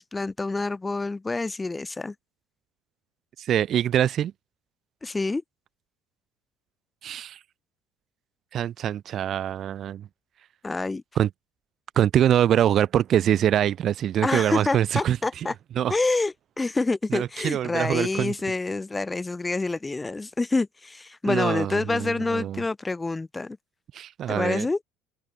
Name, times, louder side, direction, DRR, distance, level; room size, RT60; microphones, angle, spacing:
voice 1, 0.0-2.1 5.0-5.4 10.6-11.0 14.2-15.5 15.9-23.6 24.3-24.8, left 3 dB, 15° left, 7.7 m, -27 dB
voice 2, 3.4-4.3 7.0-7.4 8.5-10.1 11.2-11.3 12.0-15.5 15.8-15.9 17.1-18.3 21.2-22.6 23.9-24.7, right 10 dB, 50° right, 7.8 m, -24 dB
hypercardioid pair, 65°, 0 cm